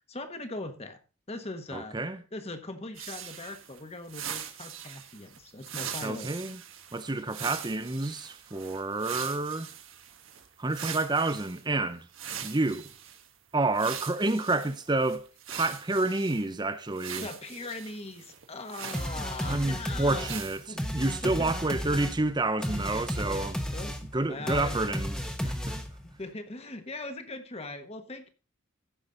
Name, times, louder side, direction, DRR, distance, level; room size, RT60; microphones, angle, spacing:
voice 1, 0.1-1.0 1.3-2.0 2.3-6.3 17.0-20.4 20.7-20.8 21.2-21.5 23.1-23.4 23.7-24.0 24.3-24.8 26.0-28.3, left 2 dB, 30° left, 1.3 m, -40 dB
voice 2, 1.7-2.2 6.0-6.6 6.9-9.7 10.6-12.1 12.4-12.9 13.5-17.3 19.4-23.6 24.1-25.8, right 2 dB, 20° right, 0.7 m, -29 dB
sound 1, 3.0-11.6 12.1-13.3 13.7-16.5 16.9-19.8 20.2-20.7, right 9 dB, 75° right, 1.4 m, -42 dB
sound 2, 18.9-26.1, equal, 5° left, 1.1 m, -34 dB
15.0 x 6.0 x 3.9 m
head